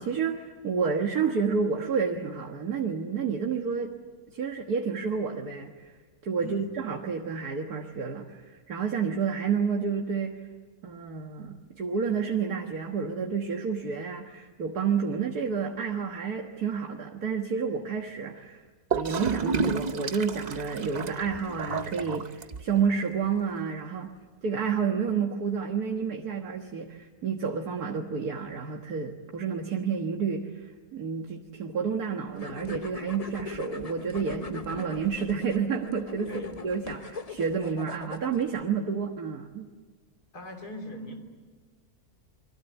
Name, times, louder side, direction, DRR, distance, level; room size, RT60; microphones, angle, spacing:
voice 1, 0.0-3.9 4.3-5.7 6.2-10.4 10.8-18.6 18.9-24.1 24.4-36.3 36.6-39.7, right 6 dB, 70° right, 2 dB, 2.0 m, -30 dB
voice 2, 6.4-6.8 36.2-36.6 40.3-41.1, left 1 dB, 75° left, 3 dB, 3.9 m, -39 dB
Gurgling / Toilet flush, 18.9-22.9, right 4 dB, 35° right, 0.7 m, -31 dB
sound 1, 32.3-38.6, left 4 dB, 30° left, 0.9 m, -40 dB
29.0 x 22.5 x 8.1 m, 1.4 s
omnidirectional pair, 1.7 m